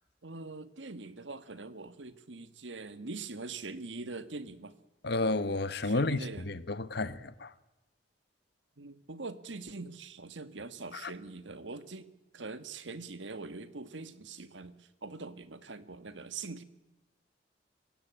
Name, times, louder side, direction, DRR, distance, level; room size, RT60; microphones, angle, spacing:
voice 1, 0.2-4.7 5.8-6.4 8.8-12.1 12.3-16.6, right 3 dB, 85° right, 1.5 m, -43 dB
voice 2, 5.0-7.5 10.9-11.1, left 2 dB, 60° left, 1.1 m, -31 dB
25.5 x 16.5 x 8.7 m
head